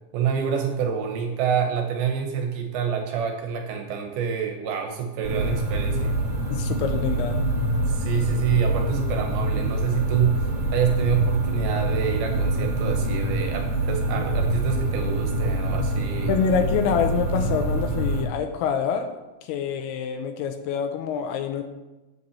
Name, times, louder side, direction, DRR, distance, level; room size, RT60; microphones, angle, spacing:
voice 1, 0.1-6.2 7.9-16.3, right 7 dB, 75° right, 4 dB, 2.5 m, -27 dB
sound 1, 5.2-18.2, right 1 dB, 50° right, 1.8 m, -25 dB
voice 2, 6.5-7.4 16.3-21.6, left 7 dB, 80° left, 7 dB, 2.5 m, -26 dB
8.0 x 5.4 x 6.9 m, 1.1 s
omnidirectional pair, 4.9 m